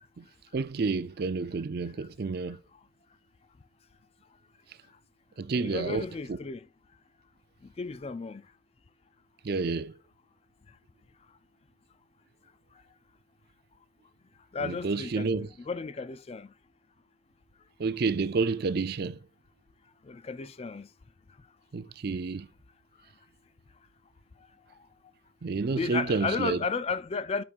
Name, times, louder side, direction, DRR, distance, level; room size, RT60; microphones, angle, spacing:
voice 1, 0.5-2.6 5.4-6.4 9.4-9.9 14.6-15.5 17.8-19.2 21.7-22.5 25.4-26.6, right 4 dB, 50° right, 0.4 m, -30 dB
voice 2, 5.5-6.6 7.8-8.4 14.5-15.3 15.6-16.5 20.1-20.9 25.7-27.4, left 4 dB, 30° left, 0.3 m, -33 dB
11.5 x 5.0 x 2.5 m
head